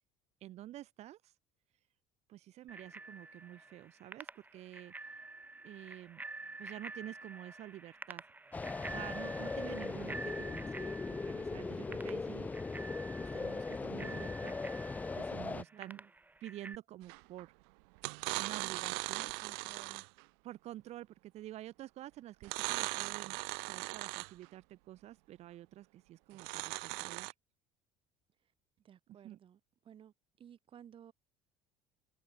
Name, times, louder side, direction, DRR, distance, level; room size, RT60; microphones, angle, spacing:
voice 1, 0.4-1.3 2.3-5.2 5.6-6.2 6.6-8.2 8.9-12.5 13.2-16.0 16.4-17.5 18.3-19.3 20.4-27.3 29.2-29.4, right 14 dB, 60° right, 4.3 m, -49 dB
Bicycle bell, 2.7-16.8, right 2 dB, 15° right, 5.3 m, -49 dB
sound 1, 8.5-15.6, left 3 dB, 10° left, 0.3 m, -39 dB
voice 2, 15.7-16.1 19.2-20.0 28.8-29.6 29.8-31.1, right 9 dB, 45° right, 4.8 m, -57 dB
sound 2, 17.1-17.4 18.0-20.2 22.4-24.5 26.3-27.3, right 36 dB, 85° right, 1.7 m, -39 dB
supercardioid pair, 105°, 13 cm